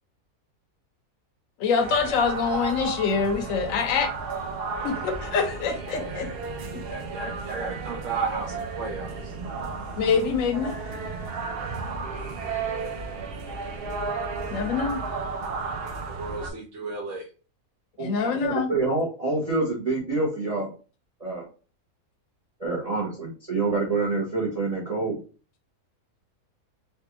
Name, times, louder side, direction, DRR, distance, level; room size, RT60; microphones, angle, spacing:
voice 1, 1.6-4.1 4.8-6.3 6.7-6.8 10.0-10.8 14.5-15.0 18.0-18.7, left 5 dB, 65° left, 6 dB, 1.0 m, -25 dB
sound 1, 1.8-16.5, right 4 dB, 90° right, 0.5 m, -33 dB
voice 2, 5.8-6.4 6.9-9.3 16.1-17.3, right 4 dB, 60° right, -3 dB, 1.0 m, -34 dB
voice 3, 18.0-20.7 21.2-21.4 22.6-25.2, right 3 dB, 35° right, -3 dB, 0.7 m, -27 dB
3.5 x 2.4 x 2.8 m, 0.37 s
omnidirectional pair, 1.6 m